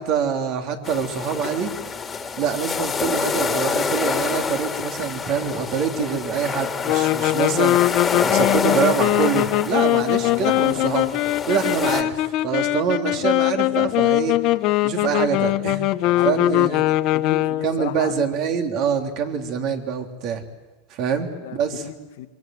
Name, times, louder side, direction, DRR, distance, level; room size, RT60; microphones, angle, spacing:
voice 1, 0.0-1.7 2.4-11.1 11.5-14.4 14.8-15.8 16.2-16.9 17.6-20.4 20.9-21.8, right 7 dB, 50° right, 3.4 m, -25 dB
sound 1, 0.8-12.0, left 5 dB, 20° left, 2.4 m, -27 dB
sound 2, 6.8-17.8, left 16 dB, 50° left, 1.0 m, -21 dB
voice 2, 10.2-11.0 16.0-16.6 17.1-18.1 21.3-22.3, left 12 dB, 80° left, 1.9 m, -33 dB
25.5 x 24.5 x 7.8 m
supercardioid pair, 130°, 0 cm